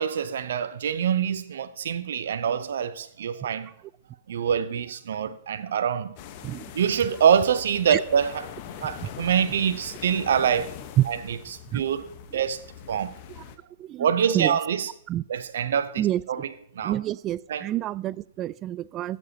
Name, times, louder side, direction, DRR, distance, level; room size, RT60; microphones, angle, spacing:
voice 1, 0.0-3.7 4.3-6.1 6.7-8.4 8.8-10.7 11.1-11.4 11.7-12.6 12.9-13.1 14.0-14.9 15.3-16.0 16.3-16.4 16.8-17.0 17.5-17.7, right 8 dB, 70° right, 0.6 m, -25 dB
sound 1, 6.2-13.6, left 9 dB, 45° left, 1.1 m, -43 dB
voice 2, 16.8-19.2, right 13 dB, 30° right, 0.3 m, -27 dB
15.0 x 7.2 x 2.9 m
hypercardioid pair, 120°, 0 cm